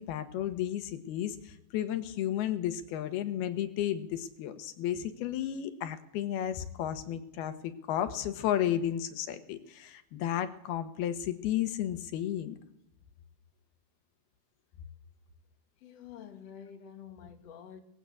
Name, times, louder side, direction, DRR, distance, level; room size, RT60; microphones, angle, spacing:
voice 1, 0.0-12.6, left 11 dB, 80° left, 3.2 m, -33 dB
voice 2, 15.8-17.8, left 8 dB, 50° left, 2.6 m, -48 dB
23.5 x 19.0 x 8.4 m
omnidirectional pair, 4.4 m